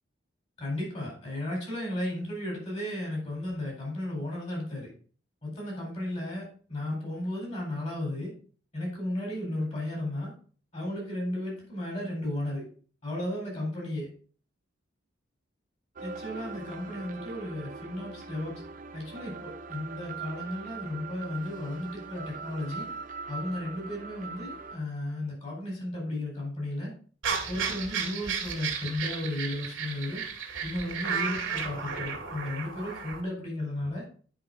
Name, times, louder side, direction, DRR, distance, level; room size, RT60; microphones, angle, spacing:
voice 1, 0.6-4.9 5.4-8.3 8.7-10.3 10.7-12.7 13.0-14.1 16.0-18.6 18.9-22.9 23.3-26.9 27.5-30.2 30.6-34.0, left 1 dB, 35° left, -2 dB, 4.2 m, -34 dB
sound 1, 16.0-24.8, right 4 dB, 45° right, 0.7 m, -41 dB
sound 2, 27.2-33.2, right 6 dB, 90° right, 2.1 m, -33 dB
9.8 x 5.2 x 3.9 m, 0.43 s
head